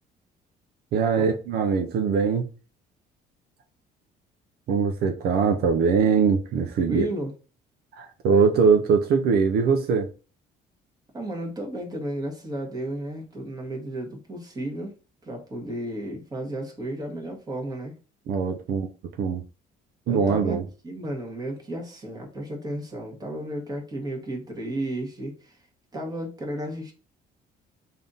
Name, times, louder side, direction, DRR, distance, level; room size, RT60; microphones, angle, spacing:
voice 1, 0.9-2.5 4.7-7.1 7.9-10.1 18.3-18.9 19.2-19.4 20.1-20.6, right 5 dB, 70° right, 0.6 m, -22 dB
voice 2, 6.9-7.3 11.1-14.9 15.2-17.9 20.1-25.6 25.9-26.9, right 1 dB, 25° right, 1.5 m, -33 dB
3.5 x 2.7 x 3.7 m
cardioid pair, 110°, 17 cm